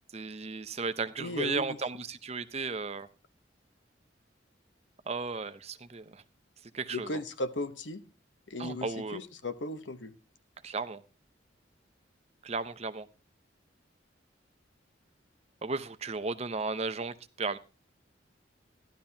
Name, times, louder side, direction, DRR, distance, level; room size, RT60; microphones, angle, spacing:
voice 1, 0.1-3.1 5.1-6.2 6.7-7.2 8.6-9.2 10.6-11.0 12.4-13.1 15.6-17.6, right 4 dB, 35° right, 0.7 m, -35 dB
voice 2, 1.2-1.8 6.9-8.0 8.5-10.1, left 2 dB, 70° left, 1.0 m, -36 dB
14.0 x 12.0 x 2.8 m
head